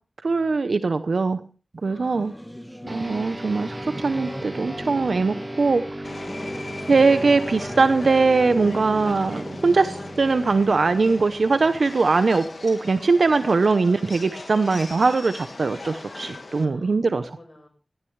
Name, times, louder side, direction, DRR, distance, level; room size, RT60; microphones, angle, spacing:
voice 1, 0.2-1.4 1.8-2.3 2.8-5.8 6.9-17.3, right 4 dB, 80° right, 10 dB, 0.8 m, -21 dB
voice 2, 1.8-2.7 6.3-6.7 14.5-15.0 16.5-17.7, left 1 dB, 40° left, 4 dB, 5.1 m, -49 dB
Singing / Musical instrument, 1.8-11.9, equal, 5° left, 1.4 m, -39 dB
sound 1, 2.9-12.6, right 1 dB, 25° right, 1.5 m, -37 dB
Subway metro underground, 6.0-16.6, left 3 dB, 60° left, 1.8 m, -39 dB
18.0 x 13.5 x 3.2 m, 0.35 s
wide cardioid pair, 80°, 0 cm